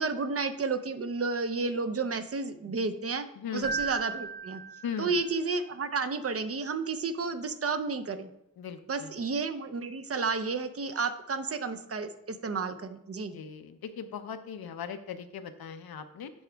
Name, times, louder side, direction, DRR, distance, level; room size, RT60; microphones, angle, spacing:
voice 1, 0.0-3.3 3.5-4.6 5.0-8.3 8.9-13.4, right 4 dB, 40° right, 9 dB, 0.6 m, -31 dB
voice 2, 3.4-3.7 4.8-5.2 8.6-9.1 13.3-16.3, left 7 dB, 90° left, 9 dB, 0.7 m, -39 dB
Keyboard (musical), 3.6-5.4, right 5 dB, 80° right, 0.8 m, -36 dB
10.5 x 4.9 x 3.4 m, 0.82 s
wide cardioid pair, 115°, 36 cm